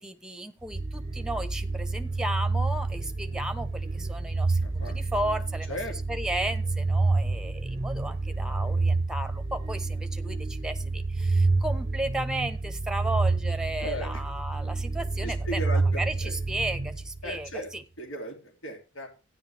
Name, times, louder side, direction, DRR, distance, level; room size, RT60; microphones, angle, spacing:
voice 1, 0.0-5.8 6.1-15.6 16.0-17.8, right 1 dB, 5° right, 10 dB, 0.9 m, -34 dB
sound 1, 0.7-17.5, right 3 dB, 30° right, 0.6 m, -29 dB
voice 2, 4.6-5.2 5.7-6.0 13.8-14.2 15.2-16.3 17.2-17.7 18.0-19.1, equal, 90° left, 2 dB, 2.9 m, -36 dB
13.0 x 10.0 x 3.5 m, 0.31 s
head